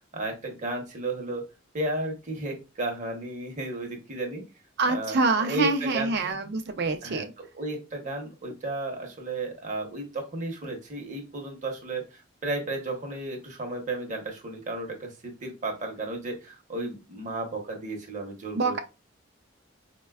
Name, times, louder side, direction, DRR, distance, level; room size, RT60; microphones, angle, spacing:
voice 1, 0.1-1.5 1.7-4.4 4.8-6.1 7.0-18.8, right 2 dB, 40° right, 0.8 m, -33 dB
voice 2, 4.8-7.3 18.5-18.8, right 3 dB, 60° right, 0.5 m, -26 dB
4.1 x 2.2 x 2.3 m
head